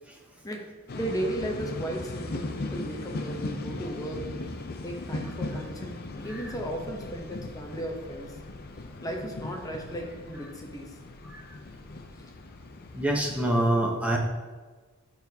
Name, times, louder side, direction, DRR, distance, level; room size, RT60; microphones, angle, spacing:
sound 1, 0.9-13.4, left 2 dB, 45° left, 0.5 m, -38 dB
voice 1, 0.9-4.2 4.8-6.0 6.2-8.3 9.0-10.9, right 1 dB, 15° left, 1 dB, 0.8 m, -35 dB
voice 2, 12.9-14.2, right 1 dB, 5° right, -1 dB, 0.9 m, -25 dB
11.0 x 4.0 x 2.8 m, 1.4 s
head